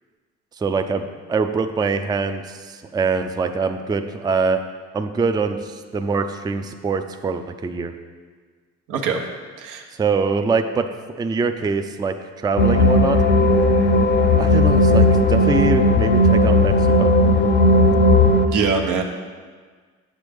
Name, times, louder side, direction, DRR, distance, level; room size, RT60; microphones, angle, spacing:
voice 1, 0.6-4.6 4.9-7.9 10.0-10.9 11.2-13.2 14.4-17.1, right 4 dB, 15° right, 7 dB, 0.3 m, -23 dB
voice 2, 8.9-9.2 9.6-9.8 18.5-19.0, right 5 dB, 90° right, 2 dB, 0.9 m, -22 dB
sound 1, 12.6-18.5, left 1 dB, 35° left, 0.6 m, -15 dB
7.3 x 6.2 x 3.5 m, 1.6 s
cardioid pair, 90°, 30 cm